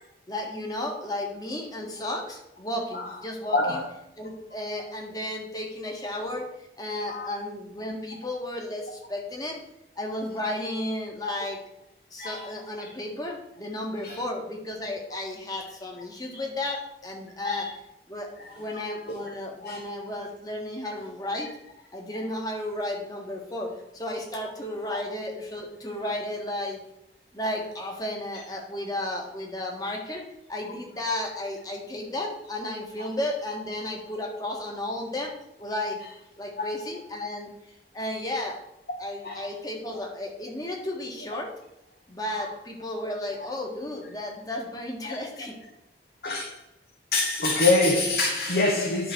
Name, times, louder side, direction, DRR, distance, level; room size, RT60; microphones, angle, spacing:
voice 1, 0.3-3.8 4.2-9.6 10.0-11.6 12.1-17.7 18.1-18.3 18.6-21.5 21.9-26.8 27.3-30.2 30.5-35.3 35.6-36.0 36.4-37.5 37.9-38.6 39.0-41.5 42.1-45.6, left 1 dB, 20° left, 0 dB, 1.6 m, -33 dB
voice 2, 3.5-3.8 7.1-7.3 11.3-11.4 12.2-12.5 14.0-14.2 17.4-17.6 19.1-19.2 19.6-19.8 24.9-25.0 33.0-33.1 36.6-36.7 39.2-39.4 45.0-45.1 46.2-46.6 47.1-49.1, left 2 dB, 60° left, 0 dB, 1.3 m, -25 dB
11.0 x 4.0 x 6.1 m, 0.84 s
head